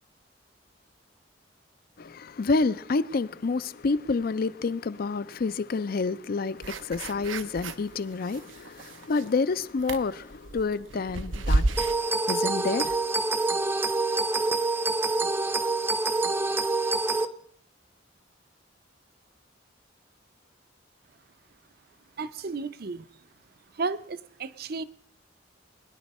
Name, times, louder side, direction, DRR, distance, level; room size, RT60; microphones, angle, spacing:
voice 1, 2.0-11.7 12.3-12.9, left 4 dB, 50° left, 0.5 m, -28 dB
sound 1, 6.6-7.9 8.3-9.4 9.8-11.9, right 2 dB, 90° right, 0.7 m, -30 dB
sound 2, 11.8-17.3, right 3 dB, 10° right, 0.6 m, -26 dB
voice 2, 22.2-23.1 23.8-24.8, right 4 dB, 55° right, 0.6 m, -33 dB
20.5 x 10.5 x 4.2 m
head